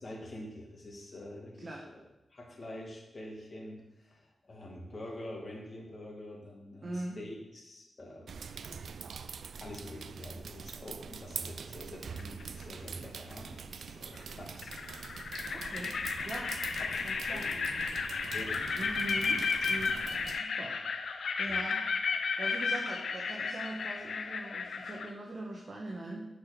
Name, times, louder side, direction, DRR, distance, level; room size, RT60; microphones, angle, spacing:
voice 1, 0.0-2.0 2.3-9.0 9.6-14.7 16.8-17.0 17.3-18.0 18.3-18.7 21.5-21.6, left 1 dB, 40° left, -2 dB, 2.0 m, -46 dB
voice 2, 6.8-7.2 15.5-16.5 17.0-17.8 18.8-20.0 20.3-20.8 21.4-21.8 22.4-26.3, right 1 dB, 40° right, -2 dB, 1.4 m, -41 dB
sound 1, 8.3-20.4, right 6 dB, 80° right, 0.4 m, -44 dB
sound 2, 12.2-12.6 14.1-14.2 14.6-25.1, left 5 dB, 75° left, 0.6 m, -33 dB
6.5 x 6.0 x 6.0 m, 0.95 s
wide cardioid pair, 100°, 0 cm